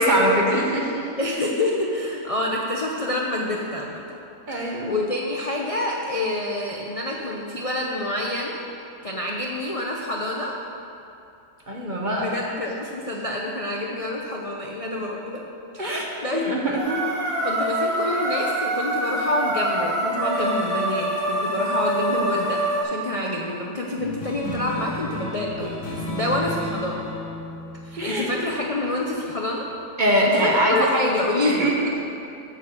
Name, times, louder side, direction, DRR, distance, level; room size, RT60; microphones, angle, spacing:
voice 1, 0.0-1.0 4.5-4.9 11.7-12.3 15.8-16.1 16.3-17.0 26.2-26.3 28.0-28.4 30.0-30.9 31.4-32.0, equal, 30° right, -2 dB, 1.2 m, -22 dB
voice 2, 1.2-4.0 4.5-8.6 9.0-10.5 12.2-15.4 15.7-16.4 17.4-27.1 27.8-29.7 30.2-31.7, left 1 dB, 50° left, -2 dB, 0.4 m, -27 dB
sound 1, 16.8-22.8, right 1 dB, 45° right, 2.9 m, -25 dB
sound 2, 24.0-28.9, left 1 dB, 85° left, 2.4 m, -33 dB
8.5 x 7.4 x 6.7 m, 2.7 s
omnidirectional pair, 1.8 m